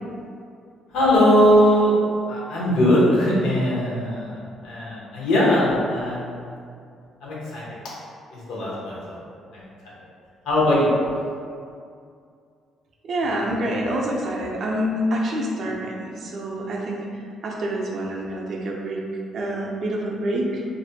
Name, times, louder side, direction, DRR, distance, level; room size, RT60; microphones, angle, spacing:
voice 1, 0.9-2.0 2.3-6.5 7.2-7.9 8.3-9.2 9.5-9.7 10.4-10.9, equal, 90° left, -6 dB, 0.7 m, -20 dB
voice 2, 13.0-17.1 17.4-19.0 19.3-20.6, right 1 dB, 50° right, -2 dB, 0.4 m, -27 dB
2.5 x 2.1 x 2.6 m, 2.3 s
cardioid pair, 130°, 0 cm